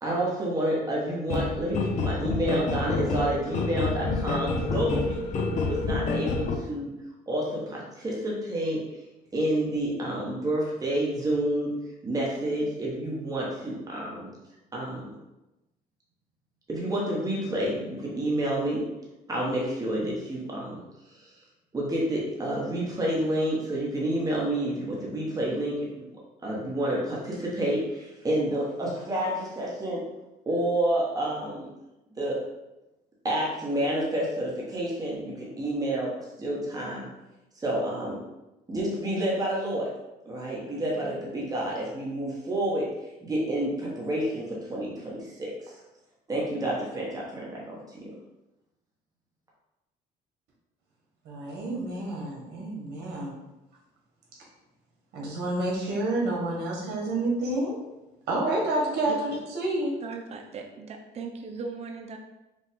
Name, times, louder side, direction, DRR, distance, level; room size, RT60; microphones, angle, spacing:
voice 1, 0.0-6.9 7.3-8.8 9.3-11.7 12.0-14.3 14.7-15.1 16.7-18.8 19.3-20.8 21.1-21.3 21.7-26.1 26.4-30.0 30.5-31.7 32.2-32.4 33.2-37.1 37.6-38.2 38.7-39.9 40.2-42.9 43.2-45.7 46.3-48.0, right 1 dB, 20° right, -4 dB, 1.2 m, -29 dB
sound 1, 1.3-6.6, left 3 dB, 45° left, 0.7 m, -28 dB
voice 2, 51.2-53.3 55.1-57.8 58.3-59.9, right 2 dB, 75° right, -2 dB, 1.5 m, -29 dB
voice 3, 60.0-62.2, right 4 dB, 40° right, 3 dB, 0.6 m, -38 dB
5.2 x 2.4 x 3.6 m, 0.98 s
cardioid pair, 110°, 17 cm